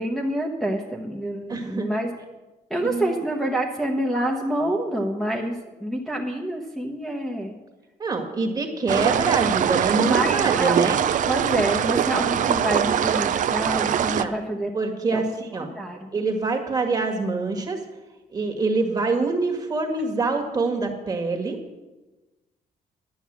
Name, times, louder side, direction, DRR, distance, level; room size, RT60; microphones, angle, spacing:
voice 1, 0.0-2.1 2.7-5.5 5.8-7.5 9.0-9.1 9.9-10.8 11.3-14.7 15.1-15.3 15.6-16.1, right 1 dB, ahead, -3 dB, 1.0 m, -27 dB
voice 2, 1.5-1.9 2.8-3.1 8.0-11.0 13.9-14.3 14.7-15.7 16.1-17.8 18.3-21.8, right 3 dB, 25° right, 4 dB, 1.7 m, -25 dB
sound 1, 8.9-14.2, right 9 dB, 55° right, 0.5 m, -22 dB
11.0 x 8.9 x 7.4 m, 1.1 s
cardioid pair, 170°, 16 cm